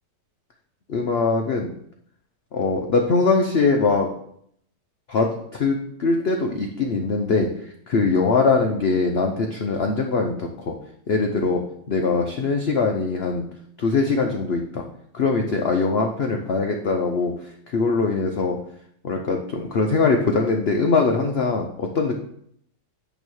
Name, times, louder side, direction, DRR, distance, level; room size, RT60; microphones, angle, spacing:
voice 1, 0.9-1.7 2.5-4.1 5.1-7.5 7.9-10.7 11.1-13.4 13.8-14.8 15.1-17.3 17.7-18.6 19.0-22.2, left 4 dB, 75° left, 2 dB, 0.5 m, -22 dB
8.9 x 3.0 x 6.2 m, 0.70 s
omnidirectional pair, 1.9 m